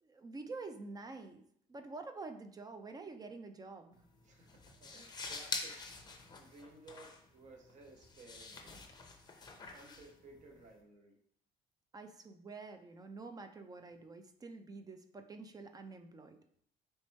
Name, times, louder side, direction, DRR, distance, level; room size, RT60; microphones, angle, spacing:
voice 1, 0.0-1.4 1.7-4.0 11.9-16.4, right 3 dB, 25° right, 7 dB, 0.3 m, -48 dB
sound 1, 3.9-10.8, left 4 dB, 25° left, 0.6 m, -47 dB
voice 2, 4.2-5.8 6.4-11.2, right 2 dB, 45° right, 2 dB, 0.8 m, -58 dB
3.2 x 3.0 x 4.2 m, 0.65 s
cardioid pair, 110°, 17 cm